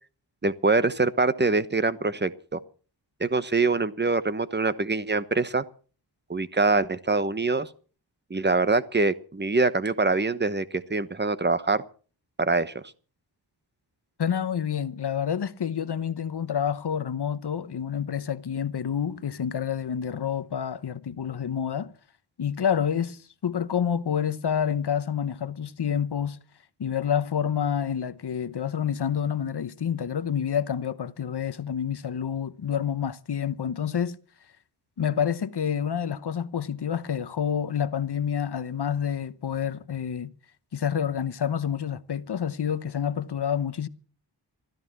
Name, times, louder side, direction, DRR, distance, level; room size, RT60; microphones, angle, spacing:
voice 1, 0.4-2.6 3.2-5.6 6.3-7.7 8.3-11.8 12.4-12.8, right 3 dB, 25° right, 1.0 m, -24 dB
voice 2, 14.2-21.9 22.4-26.4 26.8-34.2 35.0-40.3 40.7-43.9, left 8 dB, 65° left, 0.9 m, -28 dB
15.5 x 13.5 x 6.0 m
wide cardioid pair, 100°, 43 cm